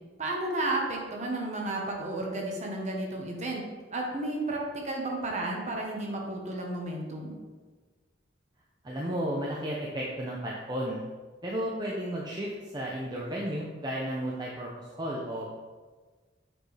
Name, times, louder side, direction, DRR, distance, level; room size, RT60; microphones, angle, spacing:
voice 1, 0.2-7.3, right 2 dB, 40° right, 0 dB, 1.2 m, -32 dB
voice 2, 8.8-11.0 11.4-15.5, equal, 25° right, -4 dB, 0.6 m, -33 dB
7.5 x 4.5 x 3.3 m, 1.4 s
head